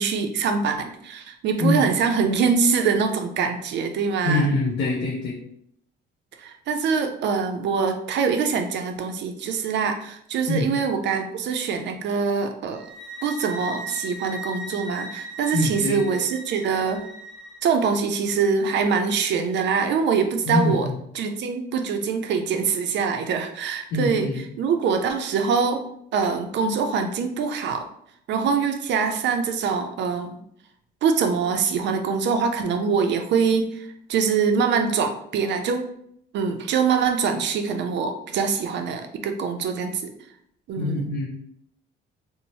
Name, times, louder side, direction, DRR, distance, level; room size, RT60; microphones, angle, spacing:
voice 1, 0.0-4.5 6.4-12.9 13.2-17.0 17.6-20.9 21.1-24.3 24.6-25.8 26.1-27.8 28.3-30.4 31.0-35.8 36.3-40.1 40.7-41.0, right 5 dB, 60° right, 5 dB, 0.4 m, -24 dB
voice 2, 1.6-1.9 4.2-5.4 10.5-10.7 15.5-16.0 20.5-21.0 23.9-24.5 40.8-41.3, left 2 dB, 60° left, -3 dB, 0.6 m, -24 dB
sound 1, 12.7-17.6, right 1 dB, 5° right, 0.9 m, -38 dB
2.7 x 2.0 x 3.0 m, 0.70 s
cardioid pair, 100°, 21 cm